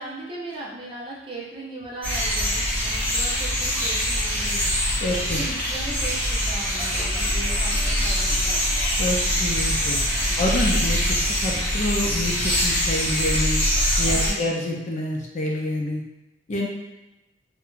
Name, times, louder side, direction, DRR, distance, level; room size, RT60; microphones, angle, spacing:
voice 1, 0.0-8.6 10.2-10.5 11.5-11.7 14.1-14.6 16.6-16.7, right 2 dB, 30° right, -6 dB, 0.6 m, -38 dB
sound 1, 2.0-14.3, equal, 10° left, 0.7 m, -23 dB
sound 2, 2.6-13.4, equal, 80° right, 0.5 m, -39 dB
voice 2, 5.0-5.4 9.0-10.0 10.4-11.2 11.4-13.6 14.0-16.0 16.5-16.7, left 1 dB, 45° left, -2 dB, 0.4 m, -27 dB
2.4 x 2.1 x 3.1 m, 0.99 s
head